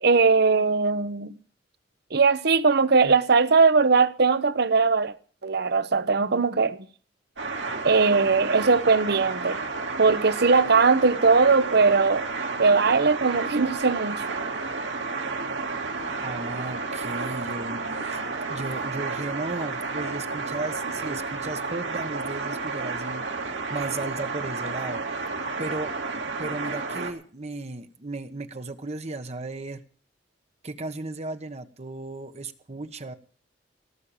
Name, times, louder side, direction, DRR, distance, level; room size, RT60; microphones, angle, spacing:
voice 1, 0.0-1.3 2.1-5.1 5.4-6.8 7.8-9.6 10.0-12.2 12.6-14.2, right 4 dB, 60° right, 0.9 m, -20 dB
sound 1, 7.4-27.1, right 4 dB, 80° right, 2.8 m, -31 dB
voice 2, 16.2-18.2 18.5-25.0 25.6-25.9 26.4-29.8 30.6-33.1, right 2 dB, 35° right, 1.1 m, -35 dB
18.0 x 6.6 x 8.8 m
head